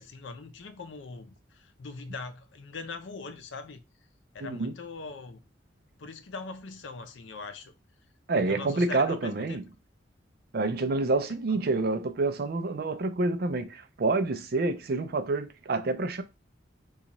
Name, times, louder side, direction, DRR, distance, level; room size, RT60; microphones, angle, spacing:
voice 1, 0.0-3.8 4.3-5.4 6.0-7.7 8.3-9.6 11.5-11.6, left 3 dB, 80° left, 0.5 m, -41 dB
voice 2, 4.4-4.7 8.3-9.6 10.5-16.2, right 3 dB, 55° right, 0.5 m, -28 dB
2.9 x 2.4 x 3.9 m
head